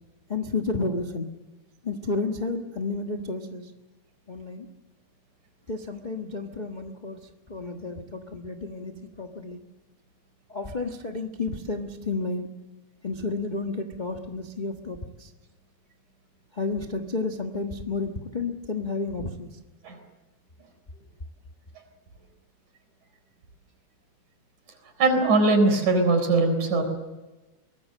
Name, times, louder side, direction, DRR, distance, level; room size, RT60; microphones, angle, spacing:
voice 1, 0.3-1.3 1.8-3.7 4.3-4.7 5.7-7.2 7.5-9.6 10.5-12.5 13.0-15.3 16.5-19.5, left 3 dB, 85° left, 3 dB, 0.4 m, -31 dB
voice 2, 25.0-26.8, right 3 dB, 80° right, 6 dB, 5.5 m, -21 dB
23.5 x 20.0 x 7.6 m, 1.2 s
omnidirectional pair, 3.4 m